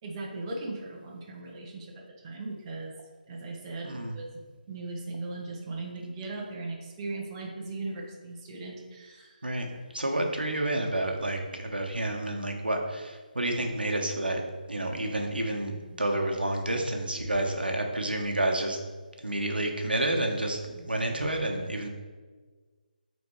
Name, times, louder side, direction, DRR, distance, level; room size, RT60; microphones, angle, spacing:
voice 1, 0.0-2.9 3.3-4.3 4.7-9.5, right 2 dB, 25° right, -2 dB, 1.0 m, -38 dB
voice 2, 9.4-14.4 14.7-18.8 19.2-21.9, right 1 dB, 85° right, 2 dB, 1.2 m, -29 dB
8.4 x 4.2 x 3.2 m, 1.4 s
figure-of-eight pair, 150°, 5 cm